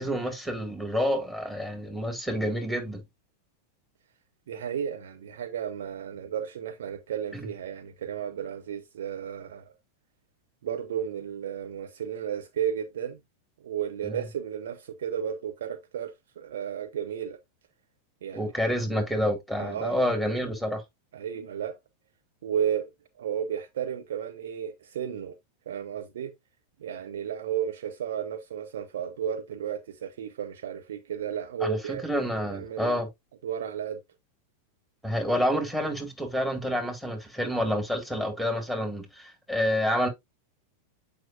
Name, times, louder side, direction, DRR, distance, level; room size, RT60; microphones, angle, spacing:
voice 1, 0.0-3.0 14.0-14.2 18.3-20.8 31.6-33.1 35.0-40.1, equal, 5° right, 2.0 m, -28 dB
voice 2, 4.5-9.7 10.6-13.2 13.6-17.4 18.2-18.5 19.6-20.1 21.1-21.7 22.4-22.9 23.2-25.3 25.7-26.3 26.8-32.0 32.3-33.0 33.4-34.0, right 8 dB, 60° right, 0.8 m, -33 dB
7.7 x 5.2 x 2.5 m
figure-of-eight pair, 90°, 0 cm